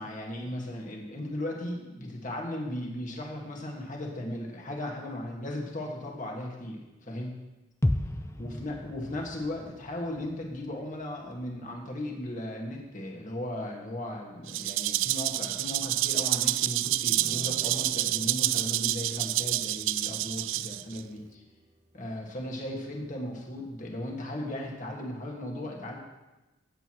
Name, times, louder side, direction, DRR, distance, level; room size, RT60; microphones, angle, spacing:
voice 1, 0.0-7.3 8.4-21.4 21.9-26.0, left 1 dB, 40° left, 0 dB, 1.8 m, -36 dB
sound 1, 7.8-11.8 12.1-12.2, left 1 dB, 15° left, 0.4 m, -34 dB
Rattle (instrument), 14.5-21.0, right 15 dB, 70° right, 0.3 m, -28 dB
sound 2, 17.0-24.8, right 2 dB, 35° right, 1.1 m, -54 dB
16.5 x 8.2 x 3.1 m, 1.1 s
head